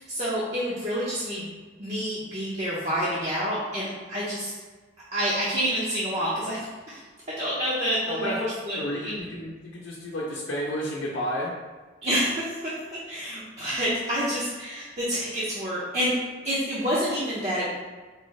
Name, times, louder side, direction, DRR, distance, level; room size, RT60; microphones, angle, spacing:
voice 1, 0.0-1.5 1.8-4.5 5.1-7.0 7.4-8.3 8.6-9.1 12.0-12.5 13.1-16.1 16.4-17.7, equal, 35° right, -8 dB, 0.6 m, -28 dB
voice 2, 8.0-8.5 8.7-11.5, equal, 70° left, -5 dB, 0.7 m, -31 dB
4.7 x 2.5 x 3.1 m, 1.4 s
head